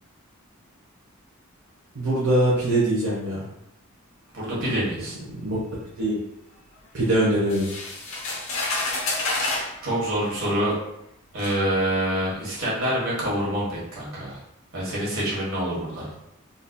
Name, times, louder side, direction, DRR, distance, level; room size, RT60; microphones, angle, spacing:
voice 1, 1.9-3.4 5.4-5.6 6.0-6.2 6.9-7.7, right 1 dB, 85° right, -8 dB, 0.9 m, -22 dB
voice 2, 4.3-5.1 9.8-10.7 11.3-14.4 14.7-16.1, right 1 dB, 70° right, -6 dB, 1.4 m, -26 dB
sound 1, 7.5-9.7 10.7-10.8 11.4-11.6, left 2 dB, 65° left, 0.8 m, -28 dB
3.8 x 2.7 x 2.2 m, 0.81 s
head